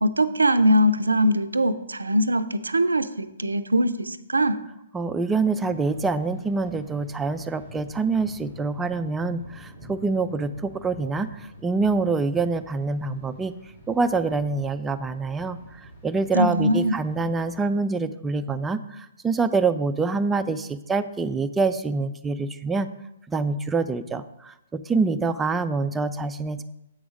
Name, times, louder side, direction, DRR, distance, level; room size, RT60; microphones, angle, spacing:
voice 1, 0.0-4.6 16.3-17.0, equal, 90° right, 12 dB, 0.4 m, -21 dB
voice 2, 4.9-13.5 13.9-22.9 23.3-26.6, right 4 dB, 10° right, 10 dB, 0.3 m, -26 dB
Thunder, 5.5-17.7, equal, 40° left, 2.8 m, -47 dB
7.9 x 4.8 x 5.1 m, 0.89 s
hypercardioid pair, 130°, 0 cm